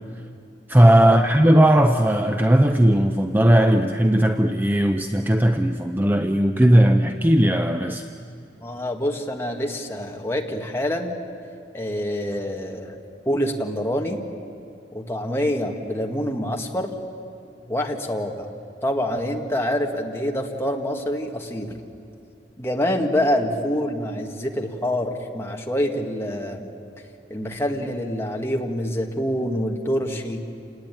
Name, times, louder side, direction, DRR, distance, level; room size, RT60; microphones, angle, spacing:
voice 1, 0.7-8.0, right 1 dB, 10° right, 6 dB, 0.6 m, -17 dB
voice 2, 8.6-11.1 11.7-12.9 13.3-14.2 14.9-16.9 17.7-18.5 18.8-21.8 22.6-26.7 27.3-30.4, equal, 15° left, 1 dB, 1.9 m, -26 dB
28.0 x 19.5 x 9.2 m, 2.6 s
head